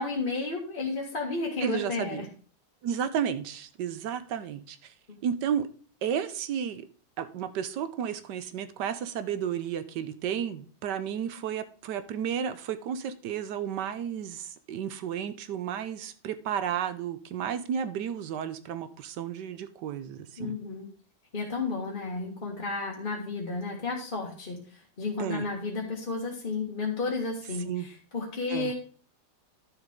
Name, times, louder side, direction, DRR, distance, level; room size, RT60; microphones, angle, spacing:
voice 1, 0.0-2.3 20.4-20.9 21.3-28.7, left 3 dB, 30° left, 1.9 m, -32 dB
voice 2, 1.6-2.3 2.8-4.9 5.2-5.7 6.0-6.8 7.2-20.6 25.2-25.4 27.7-27.9 28.5-28.7, right 8 dB, 75° right, 1.3 m, -32 dB
11.5 x 7.1 x 3.7 m
omnidirectional pair, 1.9 m